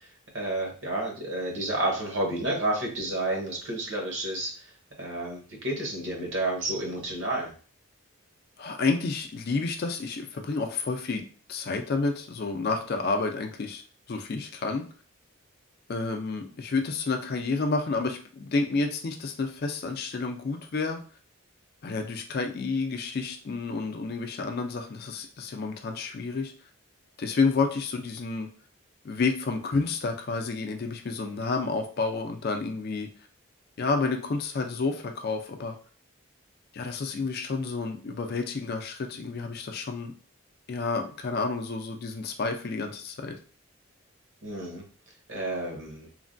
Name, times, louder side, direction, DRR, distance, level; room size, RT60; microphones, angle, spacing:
voice 1, 0.3-4.5 5.0-7.5 44.4-44.8 45.3-46.1, right 1 dB, 60° right, 0 dB, 0.9 m, -30 dB
voice 2, 8.6-11.2 11.5-13.8 14.1-14.8 15.9-21.0 21.8-26.5 27.2-28.5 29.0-33.1 33.8-35.7 36.7-40.1 40.7-43.4, left 4 dB, 50° left, 5 dB, 0.4 m, -30 dB
3.1 x 2.2 x 2.5 m, 0.40 s
head